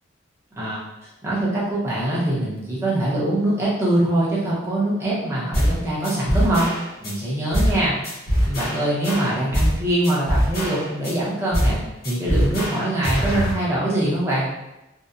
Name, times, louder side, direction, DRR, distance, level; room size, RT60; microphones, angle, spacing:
voice 1, 1.2-6.7 7.0-7.9 8.4-14.4, right 1 dB, 15° right, -7 dB, 0.6 m, -23 dB
sound 1, 5.5-5.8 6.0-7.1 7.5-7.8 8.0-9.8 10.0-11.1 11.5-11.8 12.0-13.5, equal, 50° left, 0.7 m, -22 dB
2.6 x 2.1 x 2.4 m, 0.96 s
head